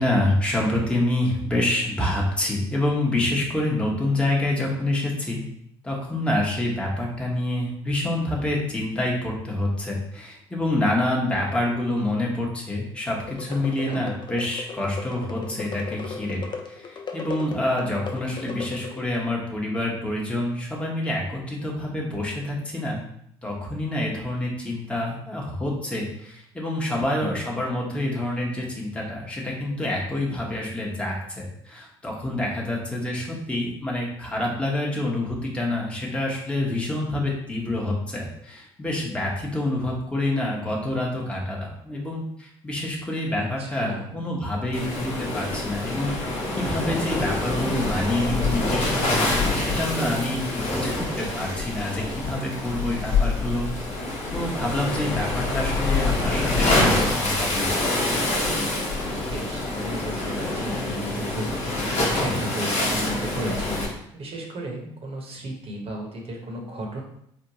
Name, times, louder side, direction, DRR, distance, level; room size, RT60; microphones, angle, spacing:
voice 1, 0.0-5.4 5.8-23.0 23.4-53.7 54.3-57.9, left 1 dB, 10° left, -3 dB, 0.9 m, -27 dB
sound 1, 13.2-19.3, left 5 dB, 35° left, 0.5 m, -37 dB
voice 2, 13.5-14.0 27.2-27.4 43.4-44.2 59.3-63.9 64.1-67.0, right 1 dB, 45° right, 0 dB, 0.9 m, -34 dB
Waves surf, 44.7-63.9, left 2 dB, 55° left, 1.0 m, -26 dB
3.4 x 2.2 x 2.8 m, 0.73 s
hypercardioid pair, 55°, 13 cm